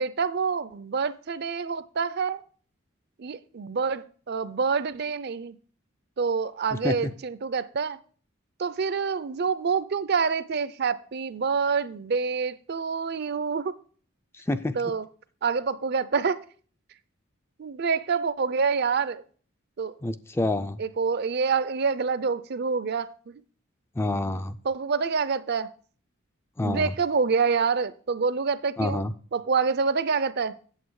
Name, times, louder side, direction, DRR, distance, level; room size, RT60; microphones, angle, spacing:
voice 1, 0.0-2.4 3.2-5.6 6.2-8.0 8.6-13.8 14.7-15.0 15.4-16.4 17.6-19.2 19.8-19.9 20.8-23.4 24.6-25.7 26.6-30.6, right 5 dB, 50° right, 0.5 m, -27 dB
voice 2, 14.3-14.7 20.0-20.8 24.0-24.6 26.6-26.9 28.8-29.1, left 2 dB, 10° left, 0.3 m, -27 dB
8.4 x 7.5 x 4.7 m
head